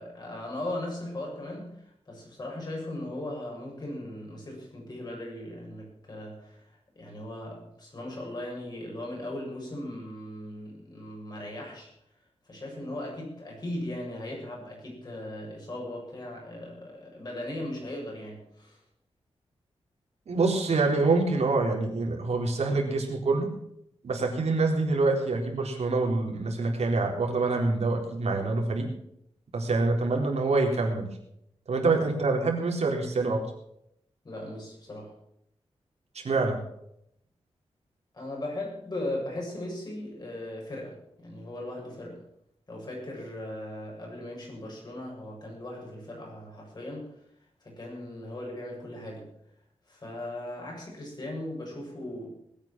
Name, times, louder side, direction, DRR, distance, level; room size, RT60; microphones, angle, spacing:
voice 1, 0.0-11.9 12.5-18.8 34.2-35.1 38.1-42.2 42.7-47.1 47.6-49.3 49.9-52.3, left 1 dB, 40° left, -1 dB, 7.4 m, -38 dB
voice 2, 20.3-23.5 24.0-28.9 29.5-31.1 31.7-33.4 36.2-36.6, right 3 dB, 80° right, 1 dB, 4.0 m, -26 dB
20.0 x 9.1 x 6.2 m, 0.75 s
wide cardioid pair, 150°, 11 cm